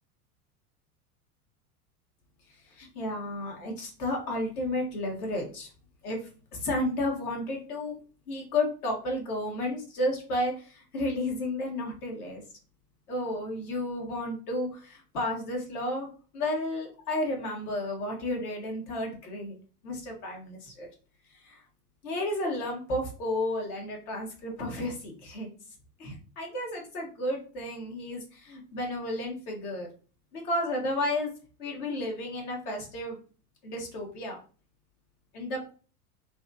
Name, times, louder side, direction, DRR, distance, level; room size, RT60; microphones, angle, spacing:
voice 1, 2.7-5.7 6.0-6.2 6.5-8.0 8.3-12.4 13.1-16.1 16.3-19.6 19.8-20.9 21.4-21.6 22.0-25.5 26.0-29.9 30.3-31.3 31.6-33.2 33.6-34.4 35.3-35.7, left 1 dB, 70° left, 1 dB, 1.5 m, -32 dB
3.3 x 2.7 x 2.3 m, 0.37 s
hypercardioid pair, 90°, 46 cm